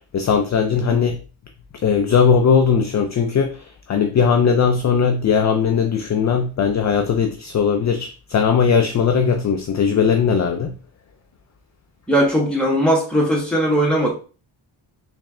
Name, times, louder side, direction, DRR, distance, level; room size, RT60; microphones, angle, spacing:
voice 1, 0.1-1.2 1.8-10.7, left 6 dB, 40° left, 0.4 m, -18 dB
voice 2, 12.1-14.1, equal, ahead, 1.3 m, -19 dB
3.3 x 3.2 x 3.6 m
wide cardioid pair, 140°, 48 cm